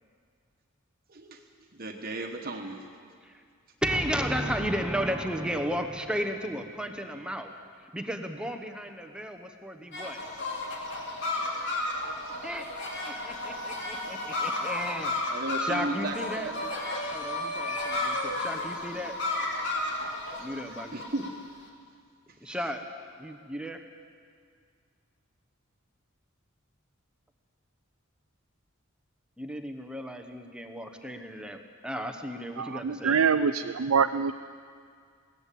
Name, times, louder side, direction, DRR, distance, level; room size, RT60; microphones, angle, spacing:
voice 1, 1.1-1.4 1.7-2.9 11.2-12.9 13.4-13.7 13.9-14.0 14.3-14.4 15.3-16.7 17.6-18.2 18.9-19.6 20.3-21.3 22.5-22.6, right 2 dB, 45° right, 3 dB, 1.3 m, -38 dB
voice 2, 3.8-7.5 7.8-10.2 12.4-12.7 13.1-16.5 17.1-19.2 20.4-21.0 22.4-22.8 23.2-23.9 29.4-33.2, equal, 5° right, 6 dB, 1.0 m, -34 dB
sound 1, 9.9-21.3, left 2 dB, 60° left, 3.0 m, -33 dB
voice 3, 32.6-34.3, right 6 dB, 75° right, 8 dB, 0.5 m, -25 dB
21.0 x 17.0 x 8.5 m, 2.2 s
head